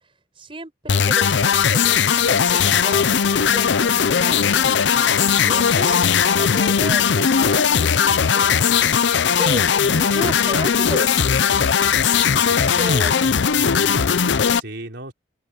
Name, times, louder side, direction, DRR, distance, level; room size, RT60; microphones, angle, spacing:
voice 1, 0.4-4.8 5.3-7.9 8.3-8.6 9.4-11.2 12.4-13.3, right 1 dB, 30° right, 5.7 m, -33 dB
sound 1, 0.9-14.6, left 7 dB, 75° left, 0.6 m, -18 dB
voice 2, 5.3-5.7 12.3-12.9 13.7-15.1, right 1 dB, 70° right, 3.9 m, -38 dB
head